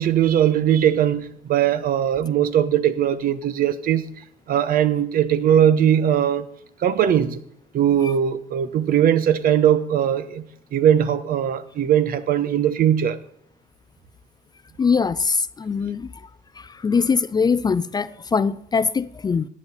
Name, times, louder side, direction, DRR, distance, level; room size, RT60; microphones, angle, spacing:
voice 1, 0.0-4.1 4.5-6.5 6.8-7.4 7.7-10.4 10.7-13.2, right 10 dB, 60° right, 1.0 m, -20 dB
voice 2, 14.8-16.1 16.6-19.5, left 5 dB, 25° left, 0.4 m, -22 dB
15.0 x 9.7 x 4.1 m
cardioid pair, 110°, 17 cm